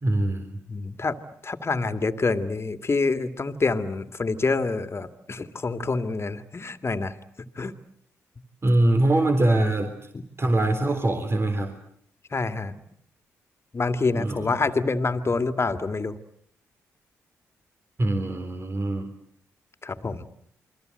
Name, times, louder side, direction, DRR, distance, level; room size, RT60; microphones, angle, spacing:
voice 1, 0.0-0.6 8.6-9.9 10.4-11.8 14.1-14.5 18.0-19.1, right 1 dB, 35° right, 5 dB, 3.7 m, -23 dB
voice 2, 0.7-1.2 1.4-7.1 7.6-7.8 10.1-10.2 12.3-12.7 13.7-16.2 19.8-20.3, left 3 dB, 35° left, 11 dB, 2.4 m, -27 dB
29.0 x 22.5 x 8.0 m, 0.68 s
hypercardioid pair, 45°, 7 cm